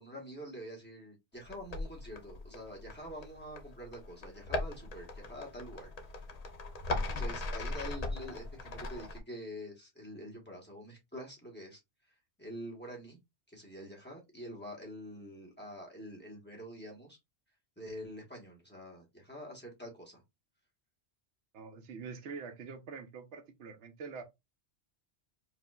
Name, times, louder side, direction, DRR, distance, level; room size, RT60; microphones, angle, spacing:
voice 1, 0.0-6.3 7.0-11.8 12.4-13.2 13.5-17.2 17.8-20.2, equal, 10° left, 1.2 m, -46 dB
sound 1, 1.4-9.2, left 2 dB, 45° left, 0.6 m, -39 dB
voice 2, 21.5-24.2, right 5 dB, 90° right, 1.0 m, -45 dB
4.8 x 2.4 x 2.3 m
omnidirectional pair, 1.1 m